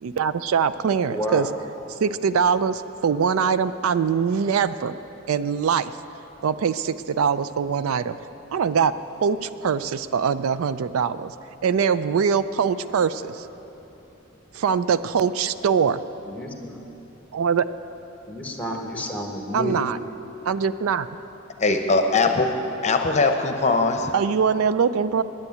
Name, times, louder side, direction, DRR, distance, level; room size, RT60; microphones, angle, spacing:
voice 1, 0.0-1.5 2.0-5.0 5.3-5.9 6.4-8.2 8.5-8.9 9.2-11.3 11.6-13.5 14.5-16.0 17.3-17.6 19.5-20.0 20.4-21.1 24.1-25.2, right 6 dB, 80° right, 14 dB, 0.4 m, -22 dB
voice 2, 1.1-1.5 16.3-16.8 18.3-19.8, equal, 5° left, 2 dB, 1.2 m, -30 dB
voice 3, 21.6-22.5 22.8-24.1, left 3 dB, 35° left, 5 dB, 0.8 m, -20 dB
9.9 x 9.0 x 9.2 m, 2.9 s
head